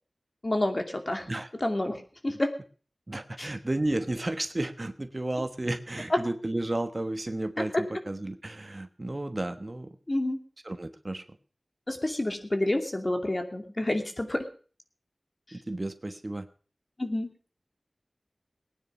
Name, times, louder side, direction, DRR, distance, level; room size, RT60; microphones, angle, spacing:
voice 1, 0.4-1.3 1.6-2.5 3.4-3.5 6.1-6.2 10.1-10.4 11.9-14.5 15.5-15.6 17.0-17.3, left 1 dB, 40° left, 5 dB, 2.6 m, -29 dB
voice 2, 3.1-10.0 10.6-11.2 15.5-16.5, right 1 dB, 40° right, 10 dB, 1.2 m, -32 dB
19.5 x 9.7 x 5.4 m, 0.40 s
wide cardioid pair, 65°, 0 cm